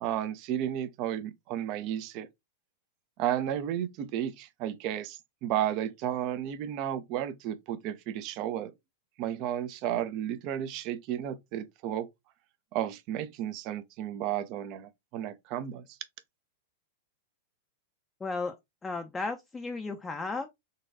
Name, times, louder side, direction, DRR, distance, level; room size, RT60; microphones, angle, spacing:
voice 1, 0.0-2.3 3.2-8.7 9.2-12.1 12.7-15.8, right 11 dB, 45° right, 0.5 m, -33 dB
voice 2, 18.2-18.5 18.8-20.5, left 3 dB, 15° left, 0.5 m, -34 dB
3.9 x 2.3 x 2.6 m
figure-of-eight pair, 100°, 0 cm